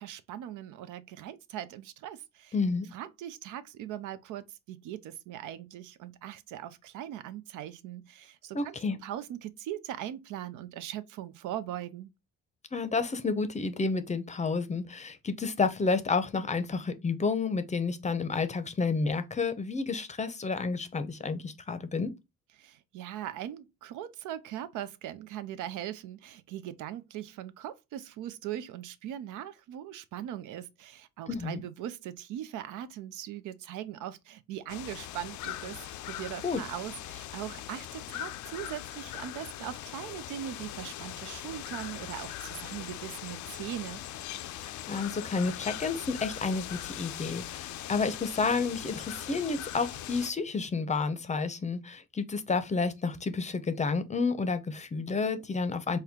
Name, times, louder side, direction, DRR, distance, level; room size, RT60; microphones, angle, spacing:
voice 1, 0.0-2.5 2.9-12.1 22.6-35.8 36.1-44.0, right 11 dB, 90° right, 0.5 m, -40 dB
voice 2, 2.5-2.9 8.5-9.0 12.7-22.1 31.3-31.6 36.4-36.6 44.6-56.0, left 4 dB, 25° left, 0.6 m, -30 dB
sound 1, 34.7-50.3, left 13 dB, 70° left, 0.4 m, -41 dB
4.3 x 2.2 x 3.5 m
cardioid pair, 90°, 30 cm